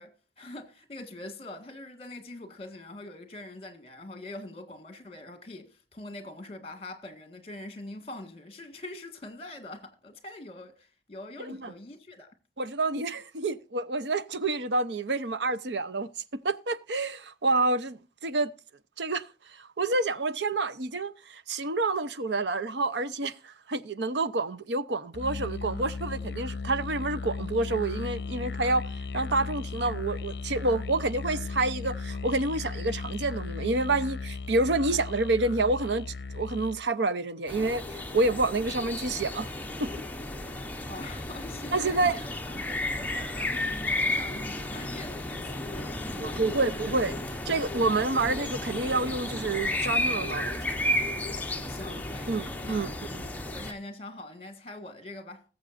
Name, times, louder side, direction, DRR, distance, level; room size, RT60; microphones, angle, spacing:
voice 1, 0.0-12.3 40.9-46.8 51.7-53.2 53.5-55.4, left 2 dB, 35° left, 1.7 m, -44 dB
voice 2, 12.6-16.1 16.4-18.5 19.0-19.2 19.6-28.9 29.1-36.1 36.3-39.5 39.8-39.9 41.7-42.2 46.2-47.2 47.5-50.5 52.3-52.9, right 2 dB, 85° right, 0.8 m, -28 dB
Musical instrument, 25.1-36.9, left 4 dB, 70° left, 0.6 m, -36 dB
sound 1, 37.5-53.7, left 1 dB, 10° left, 0.9 m, -33 dB
19.5 x 7.4 x 2.6 m
head